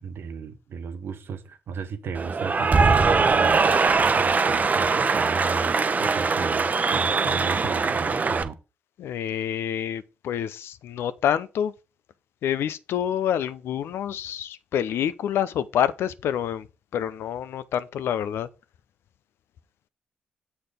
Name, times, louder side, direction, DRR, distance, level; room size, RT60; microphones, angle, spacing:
voice 1, 0.0-8.5, right 5 dB, 65° right, 1.1 m, -35 dB
Cheering / Applause, 2.1-8.4, right 4 dB, 40° right, 0.8 m, -22 dB
voice 2, 9.0-11.7 12.4-16.7 16.9-18.5, left 9 dB, 75° left, 0.5 m, -27 dB
6.9 x 4.2 x 4.9 m
supercardioid pair, 50°, 4 cm